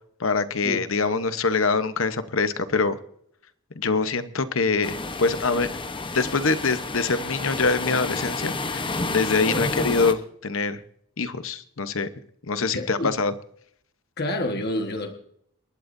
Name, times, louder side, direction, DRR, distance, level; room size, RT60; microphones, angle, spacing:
voice 1, 0.2-3.0 3.7-5.7 6.1-10.8 11.2-12.1 12.4-13.3, left 4 dB, 65° left, 11 dB, 1.0 m, -24 dB
sound 1, 4.8-10.1, left 3 dB, 20° left, 0.9 m, -30 dB
voice 2, 9.5-9.8 12.7-13.1 14.2-15.1, left 1 dB, 45° left, 5 dB, 1.5 m, -28 dB
28.0 x 12.0 x 2.7 m, 0.69 s
head